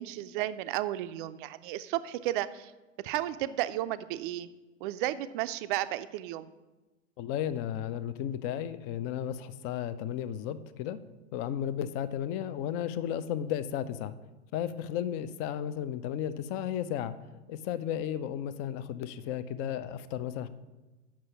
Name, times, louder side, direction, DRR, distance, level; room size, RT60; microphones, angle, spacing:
voice 1, 0.0-2.7 3.0-4.5 4.8-6.5, right 14 dB, 45° right, 13 dB, 0.5 m, -33 dB
voice 2, 7.2-11.0 11.3-14.1 14.5-17.1 17.5-20.5, left 10 dB, 35° left, 13 dB, 0.5 m, -34 dB
7.5 x 5.7 x 5.7 m, 1.2 s
figure-of-eight pair, 85°, 38 cm